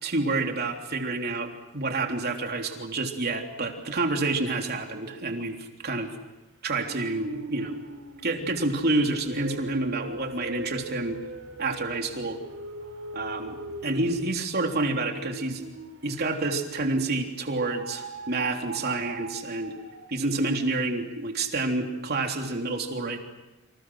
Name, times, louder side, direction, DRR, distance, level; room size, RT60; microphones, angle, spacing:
voice 1, 0.0-6.1 6.6-7.8 8.2-11.2 11.6-12.4 13.1-15.6 16.0-19.7 20.1-23.2, right 2 dB, 50° right, 3 dB, 3.4 m, -28 dB
sound 1, 6.8-17.0 17.5-20.3, right 2 dB, 85° right, 4.2 m, -42 dB
29.5 x 27.0 x 6.4 m, 1.0 s
head